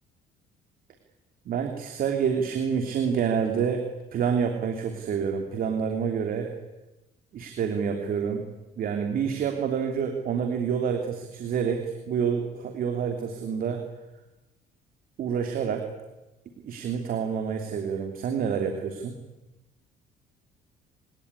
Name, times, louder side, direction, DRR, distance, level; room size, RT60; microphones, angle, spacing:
voice 1, 1.4-6.5 7.3-8.4 8.8-13.8 15.2-15.9 16.6-19.2, right 7 dB, 60° right, 5 dB, 3.2 m, -28 dB
26.0 x 19.0 x 9.9 m, 1.0 s
cardioid pair, 110°, 17 cm